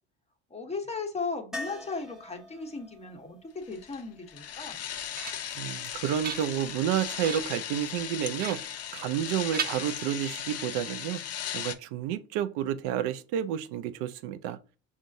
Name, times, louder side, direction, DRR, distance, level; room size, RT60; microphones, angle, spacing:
voice 1, 0.5-4.8, left 4 dB, 15° left, 1.0 m, -36 dB
sound 1, 1.5-5.4 8.1-8.2 8.4-8.5, left 1 dB, ahead, 0.8 m, -45 dB
sound 2, 3.7-11.8, left 9 dB, 35° left, 0.5 m, -37 dB
sound 3, 4.7-5.6 6.0-6.8 7.2-7.7 8.4-9.2 9.5-10.5, right 8 dB, 25° right, 0.3 m, -39 dB
voice 2, 5.6-8.6 8.9-11.2 11.5-14.6, right 10 dB, 70° right, 0.6 m, -30 dB
5.3 x 2.5 x 2.6 m
hypercardioid pair, 70°, 44 cm